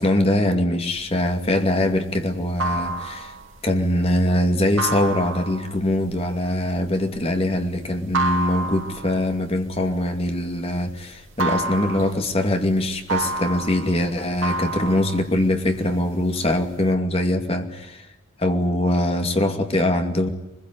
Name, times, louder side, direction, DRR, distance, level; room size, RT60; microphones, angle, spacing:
voice 1, 0.0-3.3 3.6-18.1 18.4-20.3, left 1 dB, 30° left, 5 dB, 2.4 m, -22 dB
sound 1, 1.1-10.9 11.2-16.0 16.3-16.9, right 2 dB, 75° right, 3.0 m, -29 dB
23.0 x 21.5 x 9.2 m, 0.92 s
head